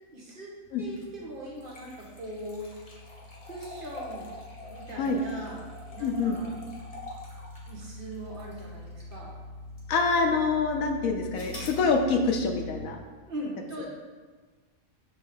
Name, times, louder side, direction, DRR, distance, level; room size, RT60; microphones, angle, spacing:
voice 1, 0.1-0.5 0.8-2.7 3.4-4.3 4.7-6.5 7.7-9.4 13.2-13.9, right 1 dB, 45° right, -3 dB, 1.2 m, -40 dB
sound 1, 0.6-12.8, left 2 dB, 55° left, 0.8 m, -45 dB
sound 2, 0.8-9.3 9.8-9.9 11.3-11.8, left 1 dB, 30° left, 1.0 m, -46 dB
voice 2, 6.0-6.4 9.9-13.0, left 4 dB, 80° left, 4 dB, 1.1 m, -26 dB
6.6 x 3.1 x 4.9 m, 1.4 s
omnidirectional pair, 1.4 m